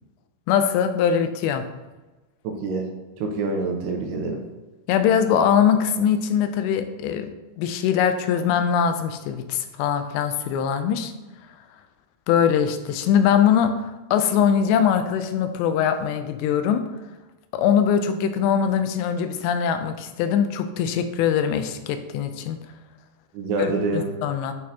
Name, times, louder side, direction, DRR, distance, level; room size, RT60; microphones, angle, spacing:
voice 1, 0.5-1.6 4.9-7.3 7.6-11.1 12.3-13.7 14.1-16.8 17.5-22.6 23.6-24.5, left 8 dB, 85° left, 8 dB, 2.7 m, -22 dB
voice 2, 2.4-2.8 3.2-4.4 23.3-24.1, right 3 dB, 85° right, 2 dB, 2.6 m, -26 dB
8.7 x 4.1 x 2.8 m, 1.1 s
omnidirectional pair, 4.9 m